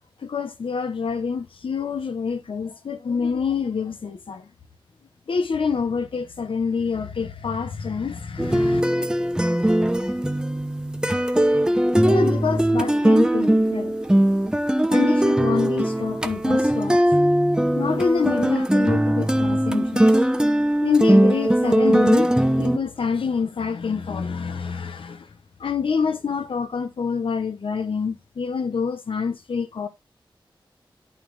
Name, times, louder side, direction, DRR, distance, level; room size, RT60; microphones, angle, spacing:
voice 1, 0.2-4.5 5.3-8.8 12.0-13.9 14.9-17.0 17.8-20.1 20.8-22.3 22.6-25.3 25.6-29.9, left 5 dB, 90° left, 1.3 m, -26 dB
sound 1, 8.4-22.8, right 1 dB, 10° right, 1.0 m, -20 dB
12.0 x 4.2 x 4.8 m
wide cardioid pair, 100°, 9 cm